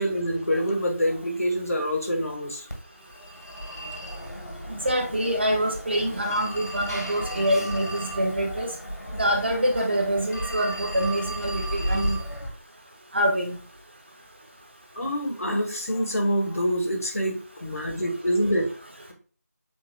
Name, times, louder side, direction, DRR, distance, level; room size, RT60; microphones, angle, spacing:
voice 1, 0.0-2.6 15.0-18.7, equal, 60° left, 2 dB, 1.3 m, -26 dB
Telephone, 2.7-12.5, right 1 dB, 80° left, 1.7 m, -34 dB
voice 2, 4.7-8.7 9.1-12.2 13.1-13.6, equal, 40° right, 1 dB, 0.9 m, -25 dB
7.3 x 2.9 x 2.2 m, 0.39 s
figure-of-eight pair, 170°, 9 cm